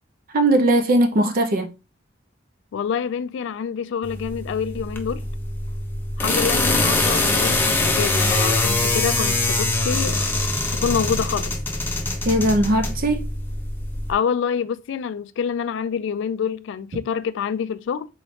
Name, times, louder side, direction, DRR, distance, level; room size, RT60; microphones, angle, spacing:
voice 1, 0.3-1.7 12.3-13.3, right 1 dB, 45° right, 0.6 m, -19 dB
voice 2, 2.7-5.2 6.2-10.3 10.7-11.5 14.1-18.1, left 7 dB, 65° left, 0.3 m, -26 dB
sound 1, 4.0-14.1, left 2 dB, 10° left, 0.5 m, -23 dB
3.9 x 3.1 x 3.1 m
head